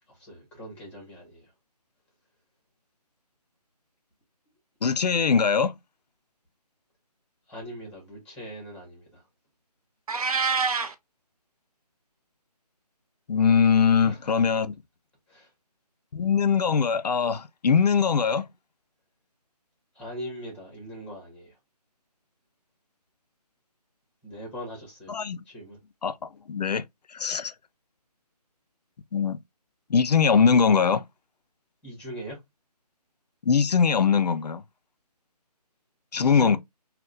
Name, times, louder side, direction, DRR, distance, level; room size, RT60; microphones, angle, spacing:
voice 1, 0.2-1.5 7.5-9.2 13.9-14.2 15.3-15.5 19.9-21.5 24.2-25.2 25.5-25.8 31.8-32.4 36.1-36.6, equal, 5° left, 1.3 m, -40 dB
voice 2, 4.8-5.8 13.3-14.7 16.1-18.5 25.1-25.4 26.0-26.2 26.5-26.8 27.1-27.5 29.1-29.4 29.9-31.0 33.4-34.6 36.1-36.6, left 6 dB, 75° left, 0.5 m, -21 dB
Meow, 10.1-10.9, right 5 dB, 60° right, 0.6 m, -25 dB
3.6 x 2.3 x 2.5 m
figure-of-eight pair, 155°, 21 cm